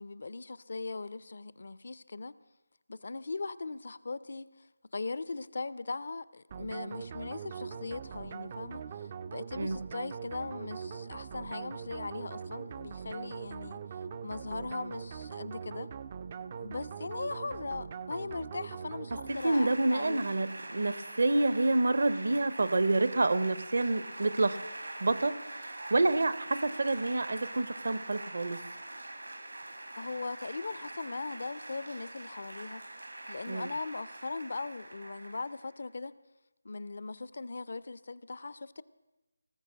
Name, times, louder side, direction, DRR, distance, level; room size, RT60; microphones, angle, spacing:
voice 1, 0.0-2.4 2.9-4.7 4.9-13.8 14.2-15.9 16.6-20.2 29.9-32.8 33.3-36.2 36.6-38.8, left 3 dB, 50° left, 18 dB, 0.4 m, -39 dB
sound 1, 6.5-19.8, right 7 dB, 25° right, 0.3 m, -42 dB
voice 2, 19.3-24.6 25.0-28.6 33.5-33.7, right 2 dB, 55° right, 15 dB, 0.7 m, -28 dB
sound 2, 19.3-35.7, right 2 dB, 75° right, 1.6 m, -44 dB
18.5 x 6.5 x 7.3 m, 1.1 s
figure-of-eight pair, 160°, 0 cm